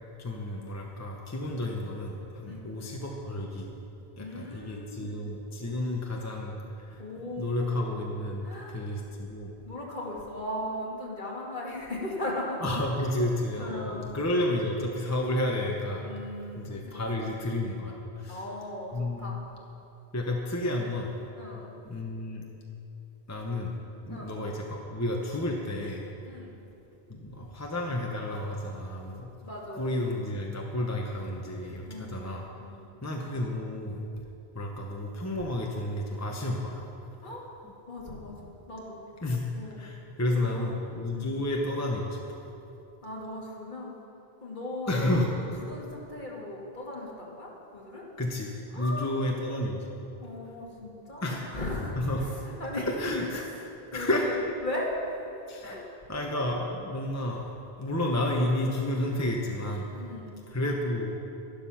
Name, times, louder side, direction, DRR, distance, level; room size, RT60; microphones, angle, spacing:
voice 1, 0.2-3.7 4.2-7.0 7.4-9.5 12.6-16.0 16.6-18.4 18.9-19.3 20.1-21.1 21.8-22.4 23.3-23.8 24.0-26.0 27.1-29.3 29.8-32.4 33.0-34.0 34.5-36.8 39.2-39.4 39.8-42.4 44.9-45.3 48.2-49.9 51.2-51.4 52.0-52.2 53.0-53.4 53.9-54.3 55.5-55.8 56.1-57.5 57.8-59.9 60.5-61.1, left 1 dB, 15° left, -1 dB, 1.0 m, -31 dB
voice 2, 2.4-2.8 4.2-5.2 5.6-5.9 7.0-8.0 8.4-8.8 9.6-12.7 13.0-13.2 13.6-14.1 16.0-17.0 18.3-19.4 21.4-21.7 24.1-24.3 26.2-26.6 29.4-29.9 31.9-32.9 37.2-37.5 37.9-39.0 39.5-39.8 40.3-40.6 41.1-41.3 43.0-44.0 44.4-48.0 48.7-49.3 50.2-54.3 54.6-55.3 55.6-55.9 59.9-60.4, left 1 dB, 50° left, -4 dB, 2.5 m, -38 dB
12.5 x 12.0 x 5.8 m, 2.8 s
omnidirectional pair, 1.1 m